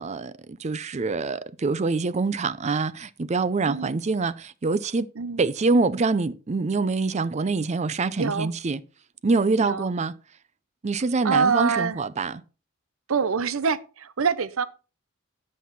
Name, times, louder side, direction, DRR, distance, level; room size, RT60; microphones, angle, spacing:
voice 1, 0.0-5.1 5.4-8.8 9.2-10.1 10.8-12.3, right 3 dB, 35° right, 0.5 m, -25 dB
voice 2, 3.7-4.0 5.2-5.4 8.2-8.5 9.6-9.9 11.2-12.0 13.1-14.7, right 5 dB, 90° right, 0.7 m, -25 dB
9.3 x 7.6 x 4.1 m
head